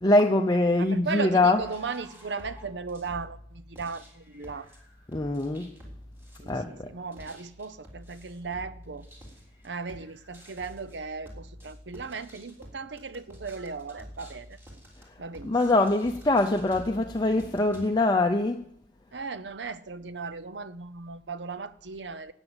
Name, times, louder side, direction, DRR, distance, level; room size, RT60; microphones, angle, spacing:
voice 1, 0.0-1.7 5.1-5.7 6.5-6.9 15.4-18.6, left 2 dB, 25° left, 0.6 m, -23 dB
voice 2, 0.8-4.7 6.4-9.1 9.6-14.6 15.2-15.9 19.1-22.3, right 4 dB, 70° right, 0.8 m, -37 dB
sound 1, 1.6-17.9, equal, 15° right, 3.6 m, -49 dB
13.0 x 9.0 x 8.0 m
head